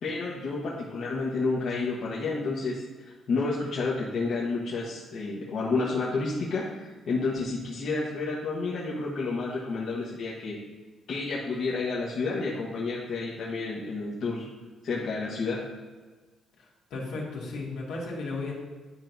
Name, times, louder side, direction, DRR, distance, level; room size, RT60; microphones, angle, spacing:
voice 1, 0.0-10.6 11.1-14.5 14.8-15.6, left 3 dB, 65° left, -5 dB, 1.1 m, -30 dB
voice 2, 16.6-18.5, left 3 dB, 85° left, -3 dB, 1.8 m, -35 dB
9.8 x 4.4 x 2.6 m, 1.3 s
cardioid pair, 90°, 0 cm